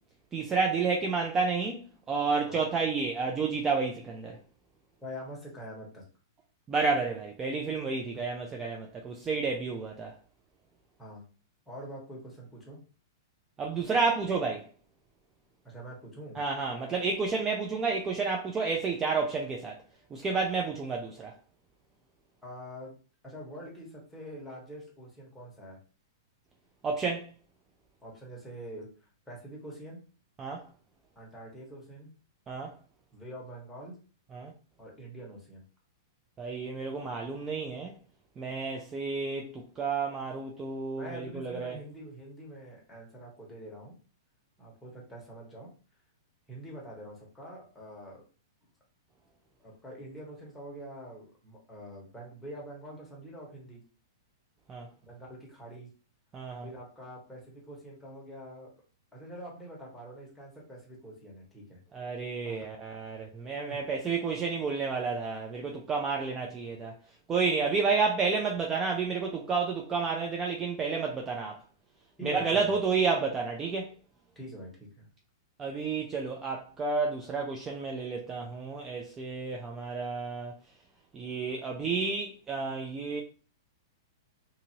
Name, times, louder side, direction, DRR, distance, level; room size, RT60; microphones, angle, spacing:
voice 1, 0.3-4.4 6.7-10.1 13.6-14.7 16.4-19.8 20.1-21.3 26.8-27.3 30.4-30.6 32.5-32.7 34.3-34.5 36.4-37.9 38.4-41.8 54.7-54.9 56.3-56.7 61.9-66.9 67.3-71.6 72.2-73.9 75.6-80.5 81.1-83.2, right 4 dB, 20° right, 0.4 m, -30 dB
voice 2, 5.0-6.0 11.0-11.2 11.7-12.8 15.6-16.4 22.4-23.0 23.2-25.8 28.0-28.9 29.3-30.0 31.1-32.1 33.1-33.9 34.8-35.6 40.9-43.9 44.6-45.7 46.5-48.2 49.6-53.8 55.0-55.9 56.6-58.7 59.1-61.8 62.4-62.7 63.7-63.8 72.2-72.8 74.3-75.1, equal, 5° left, 1.2 m, -45 dB
2.6 x 2.6 x 2.8 m
hypercardioid pair, 120°, 2 cm